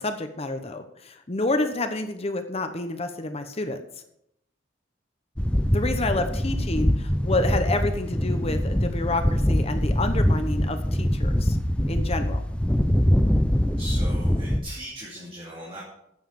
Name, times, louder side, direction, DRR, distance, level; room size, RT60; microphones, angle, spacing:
voice 1, 0.0-3.8 5.7-11.6 11.9-12.4, left 2 dB, 30° left, 8 dB, 0.9 m, -29 dB
sound 1, 5.4-14.6, equal, 5° left, 0.7 m, -23 dB
voice 2, 13.8-15.8, equal, 30° right, -5 dB, 2.7 m, -38 dB
9.4 x 7.2 x 7.2 m, 0.78 s
head